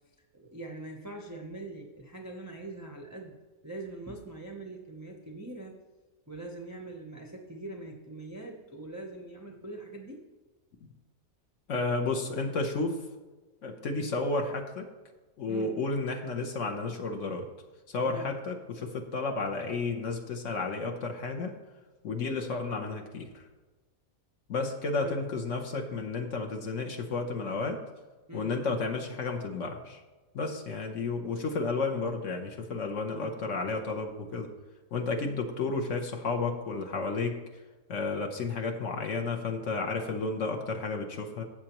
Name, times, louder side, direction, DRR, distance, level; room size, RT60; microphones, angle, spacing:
voice 1, 0.3-3.3 3.6-5.8 6.3-10.2 15.5-15.8 18.0-18.3 24.9-25.2 28.3-28.6, right 2 dB, 20° right, 0 dB, 0.4 m, -42 dB
voice 2, 11.7-13.0 13.6-14.9 15.4-17.5 17.9-21.5 22.0-23.4 24.5-27.8 28.3-30.0 30.3-34.5 34.9-37.4 37.9-41.4, left 3 dB, 60° left, 2 dB, 1.1 m, -32 dB
13.0 x 7.5 x 3.0 m, 1.3 s
omnidirectional pair, 1.5 m